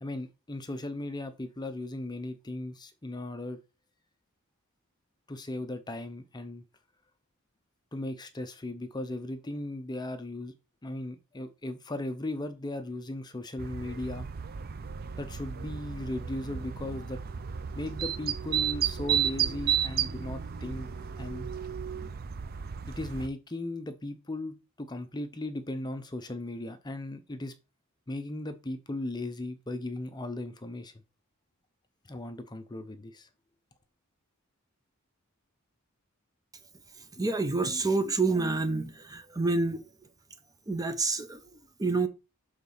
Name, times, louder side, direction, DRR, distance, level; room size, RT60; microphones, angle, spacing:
voice 1, 0.0-3.6 5.3-6.6 7.9-10.5 10.8-14.3 15.2-17.2 17.7-20.9 21.2-21.5 22.9-27.5 28.1-30.9 32.1-33.3, left 1 dB, 20° left, 0.7 m, -37 dB
sound 1, 13.6-23.3, right 8 dB, 45° right, 0.5 m, -33 dB
sound 2, 14.3-22.1, right 6 dB, 75° right, 1.4 m, -47 dB
voice 2, 37.2-39.8 40.7-41.4 41.8-42.1, right 3 dB, 15° right, 0.8 m, -28 dB
6.7 x 4.0 x 5.5 m
head